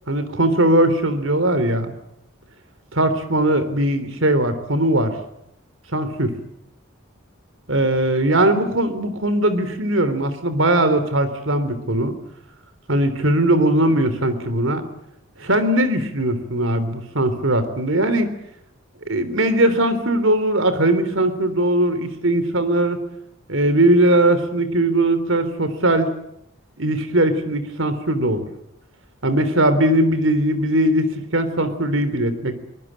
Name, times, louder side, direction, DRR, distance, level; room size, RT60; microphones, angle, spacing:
voice 1, 0.1-1.9 2.9-5.1 5.9-6.3 7.7-12.2 12.9-14.8 15.4-18.3 19.1-23.0 23.5-26.1 26.8-28.5 29.2-32.6, right 1 dB, 70° right, 11 dB, 3.5 m, -19 dB
24.0 x 19.0 x 9.0 m, 0.79 s
head